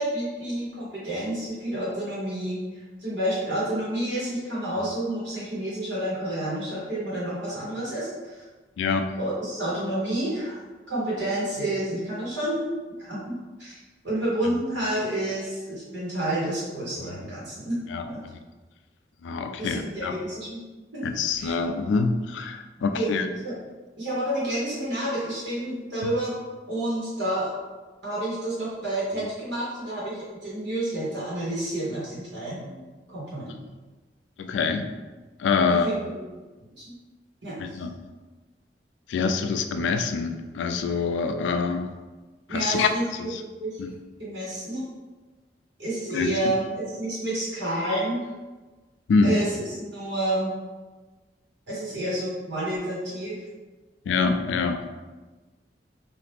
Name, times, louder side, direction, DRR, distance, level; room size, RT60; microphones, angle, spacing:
voice 1, 0.0-8.4 9.2-10.6 10.9-12.6 13.0-13.3 13.6-13.8 14.0-17.8 18.1-18.2 19.6-20.6 20.9-21.0 21.4-21.5 22.9-23.1 23.4-23.6 24.0-26.4 26.7-27.5 28.0-32.8 33.1-33.5 35.7-36.3 37.4-37.5 42.5-43.8 44.2-44.8 45.8-48.2 49.2-50.5 51.7-53.4, right 1 dB, 90° right, -8 dB, 1.3 m, -29 dB
voice 2, 8.8-9.1 17.0-17.2 17.9-18.0 19.2-20.2 21.0-23.3 26.0-26.1 34.4-34.9 35.4-35.9 37.6-37.9 39.1-41.9 42.5-42.9 43.2-43.4 43.8-43.9 46.1-46.3 49.1-49.4 54.1-54.8, left 4 dB, 90° left, 7 dB, 0.3 m, -25 dB
2.8 x 2.4 x 3.3 m, 1.3 s
head